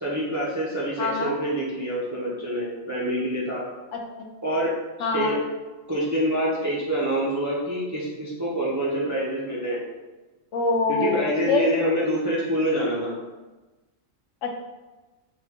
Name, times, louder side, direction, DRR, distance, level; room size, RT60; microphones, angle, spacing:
voice 1, 0.0-3.6 4.4-4.7 5.1-5.4 5.9-9.8 10.9-13.1, right 1 dB, 25° right, -6 dB, 0.4 m, -26 dB
voice 2, 1.0-1.3 3.9-4.0 5.0-5.4 10.5-11.7 14.4-14.5, left 3 dB, 75° left, 1 dB, 0.9 m, -24 dB
4.3 x 2.3 x 3.6 m, 1.2 s
omnidirectional pair, 1.4 m